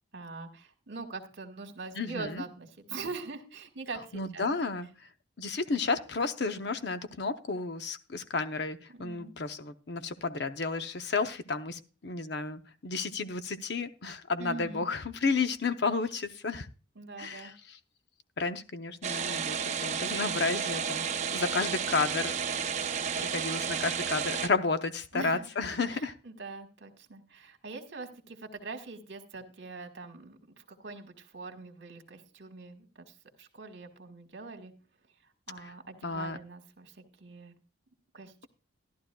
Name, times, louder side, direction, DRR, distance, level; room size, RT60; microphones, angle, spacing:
voice 1, 0.1-4.5 8.9-9.3 14.4-14.9 16.9-17.5 25.1-25.5 25.9-34.7 35.5-37.5 38.1-38.5, right 3 dB, 60° right, 3 dB, 1.7 m, -43 dB
voice 2, 1.9-2.4 4.1-4.9 5.4-16.7 17.2-17.8 18.4-22.4 23.2-26.2 35.6-35.7 36.0-36.4, left 4 dB, 55° left, 9 dB, 0.7 m, -32 dB
sound 1, 19.0-24.5, right 6 dB, 35° right, 0.6 m, -32 dB
14.0 x 11.5 x 2.2 m, 0.34 s
head